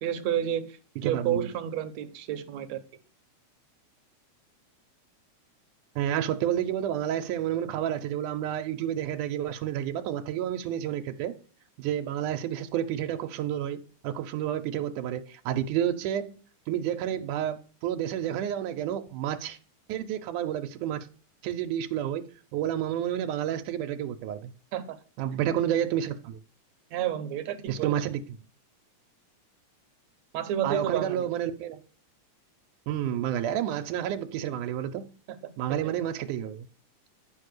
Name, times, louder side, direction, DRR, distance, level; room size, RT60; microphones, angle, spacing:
voice 1, 0.0-2.8 24.7-25.0 26.9-27.9 30.3-31.3 35.3-35.4 35.8-35.9, right 10 dB, 70° right, 1.9 m, -30 dB
voice 2, 1.0-1.5 6.0-11.3 11.8-16.4 16.7-19.6 19.9-21.1 21.4-22.2 22.5-24.5 25.2-26.4 27.7-28.4 30.6-31.8 32.9-35.1 35.6-36.7, right 10 dB, 85° right, 2.3 m, -30 dB
11.0 x 5.4 x 6.5 m
omnidirectional pair, 3.5 m